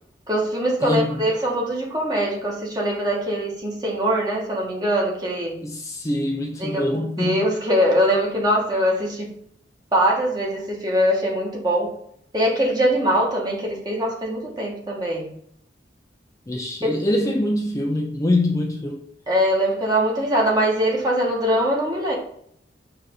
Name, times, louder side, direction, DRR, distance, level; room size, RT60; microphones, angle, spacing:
voice 1, 0.3-5.6 6.6-9.3 9.9-11.9 12.3-15.3 16.8-17.0 19.3-22.1, equal, 25° right, 1.6 m, -22 dB
voice 2, 0.8-1.2 5.6-7.5 16.5-19.1, left 1 dB, 20° left, 0.5 m, -24 dB
5.6 x 3.4 x 5.3 m
head